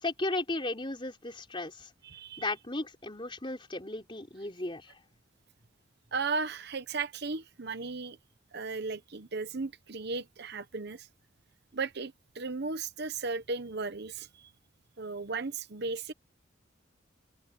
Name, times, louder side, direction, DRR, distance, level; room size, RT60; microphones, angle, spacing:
voice 1, 0.0-1.9 2.4-4.9, left 2 dB, 25° left, 4.0 m, -35 dB
voice 2, 2.0-2.5 6.1-8.2 8.5-11.1 11.7-14.5 15.0-16.1, right 4 dB, 55° right, 1.0 m, -35 dB
open air
head